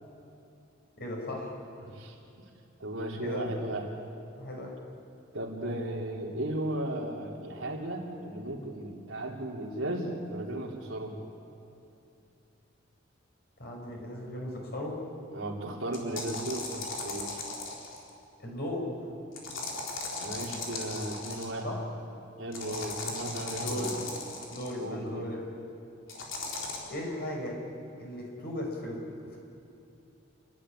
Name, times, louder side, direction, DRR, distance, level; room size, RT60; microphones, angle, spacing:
voice 1, 1.0-1.9 3.2-3.4 4.4-4.7 13.6-15.0 18.4-18.9 21.6-21.8 23.6-24.0 24.5-25.5 26.9-27.6 28.0-29.0 29.3-29.4, left 1 dB, 55° left, 0 dB, 5.4 m, -37 dB
voice 2, 1.8-2.2 2.8-3.9 5.3-11.1 15.3-17.4 20.2-21.7 22.4-24.0 24.7-25.3, right 1 dB, 85° right, 0 dB, 3.3 m, -35 dB
sound 1, 15.9-18.1 19.4-21.6 22.5-24.7 26.1-26.8, left 3 dB, 80° left, 3.9 m, -37 dB
28.5 x 12.0 x 9.9 m, 2.8 s
head